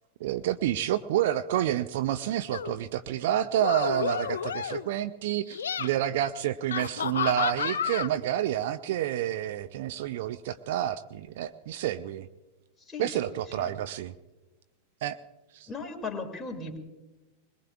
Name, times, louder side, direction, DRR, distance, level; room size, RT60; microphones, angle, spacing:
voice 1, 0.2-12.3 13.0-14.1 15.0-15.2 15.5-15.7, right 11 dB, 55° right, 12 dB, 0.5 m, -29 dB
sound 1, 2.5-2.8 3.5-4.9 5.4-5.9 6.7-8.1, left 7 dB, 65° left, 0.5 m, -31 dB
voice 2, 12.8-13.2 13.5-13.8 15.7-16.8, left 3 dB, 10° left, 1 dB, 2.4 m, -37 dB
21.5 x 21.5 x 2.4 m, 1.1 s
figure-of-eight pair, 90°, 0 cm